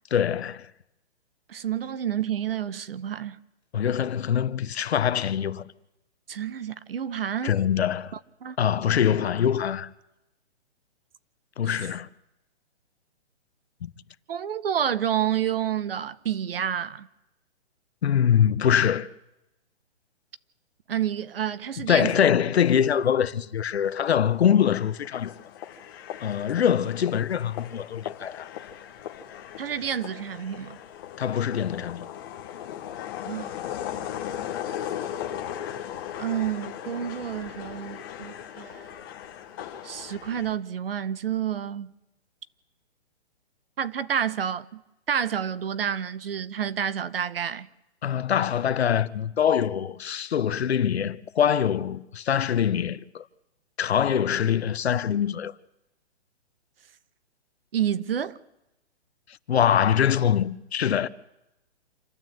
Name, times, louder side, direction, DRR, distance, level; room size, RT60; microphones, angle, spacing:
voice 1, 0.1-0.7 3.7-5.7 7.4-8.1 8.6-9.9 11.6-12.1 13.8-13.9 18.0-19.1 21.9-25.3 26.2-28.5 31.2-32.1 48.0-53.2 53.8-55.5 59.5-61.1, left 9 dB, 65° left, 0.9 m, -24 dB
voice 2, 1.5-3.4 6.3-7.6 8.4-8.6 11.6-11.8 14.3-17.1 20.9-22.2 29.6-30.8 33.3-33.5 36.2-39.0 39.8-41.9 43.8-44.8 45.1-47.7 57.7-58.4, right 9 dB, 55° right, 0.9 m, -29 dB
sound 1, 23.8-40.5, left 10 dB, 20° left, 1.2 m, -38 dB
27.5 x 12.5 x 7.8 m
hypercardioid pair, 170°, 34 cm